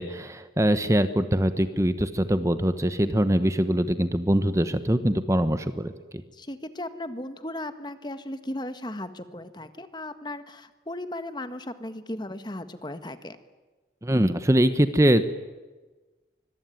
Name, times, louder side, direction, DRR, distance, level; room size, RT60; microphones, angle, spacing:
voice 1, 0.0-5.9 14.0-15.2, right 1 dB, 15° right, 11 dB, 1.1 m, -23 dB
voice 2, 6.3-13.4, left 1 dB, 25° left, 10 dB, 1.6 m, -36 dB
25.0 x 22.5 x 9.4 m, 1.2 s
head